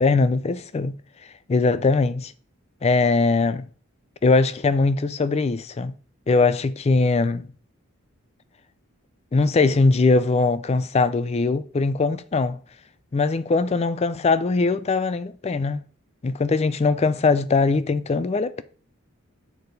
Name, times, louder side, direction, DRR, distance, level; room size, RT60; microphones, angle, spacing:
voice 1, 0.0-1.0 1.5-2.3 2.8-3.7 4.2-5.9 6.3-7.5 9.3-12.6 13.1-15.8 16.2-18.6, left 3 dB, 30° left, 0.3 m, -21 dB
6.8 x 4.3 x 3.9 m
head